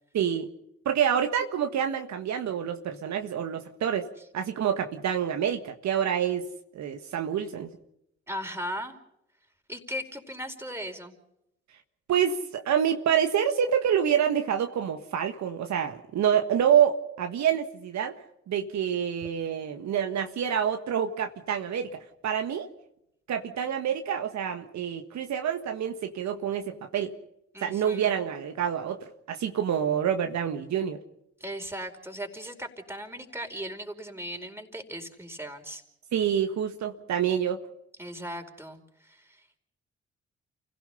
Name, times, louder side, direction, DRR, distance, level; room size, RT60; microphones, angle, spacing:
voice 1, 0.1-0.5 0.8-4.1 4.3-6.4 6.7-7.7 12.1-18.2 18.5-22.7 23.3-27.2 27.6-29.0 29.3-31.0 36.1-37.6, right 8 dB, 65° right, 6 dB, 1.6 m, -27 dB
voice 2, 8.3-8.9 9.7-11.2 27.5-28.1 31.4-35.8 38.0-39.6, equal, 10° right, 4 dB, 4.8 m, -38 dB
29.5 x 17.0 x 5.6 m, 0.79 s
hypercardioid pair, 40°, 31 cm